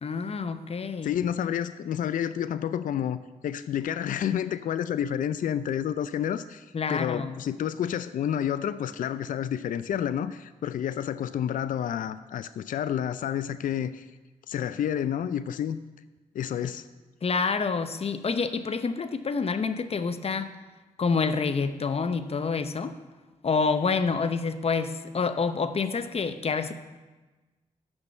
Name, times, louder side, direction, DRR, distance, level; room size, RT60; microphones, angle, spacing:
voice 1, 0.0-1.1 6.7-7.3 17.2-20.5 21.0-23.0 23.4-26.7, left 4 dB, 40° left, 11 dB, 0.7 m, -27 dB
voice 2, 1.0-14.1 14.5-15.8 16.3-16.8, left 9 dB, 65° left, 14 dB, 0.4 m, -29 dB
8.8 x 6.1 x 6.9 m, 1.2 s
supercardioid pair, 50°, 15 cm